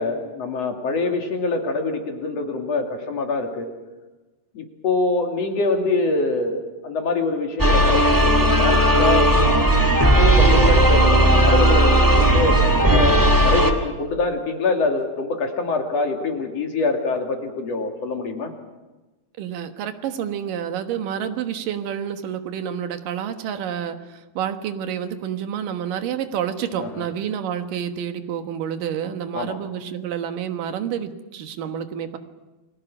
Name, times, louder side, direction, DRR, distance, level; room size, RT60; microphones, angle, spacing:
voice 1, 0.0-3.7 4.5-9.5 10.0-12.6 12.9-18.5 26.8-27.0 29.3-29.6, left 3 dB, 45° left, 3 dB, 3.4 m, -25 dB
sound 1, 7.6-13.7, right 1 dB, 30° right, 0.3 m, -16 dB
voice 2, 19.4-32.2, right 9 dB, 70° right, 7 dB, 2.9 m, -29 dB
29.5 x 21.5 x 6.1 m, 1.1 s
omnidirectional pair, 4.2 m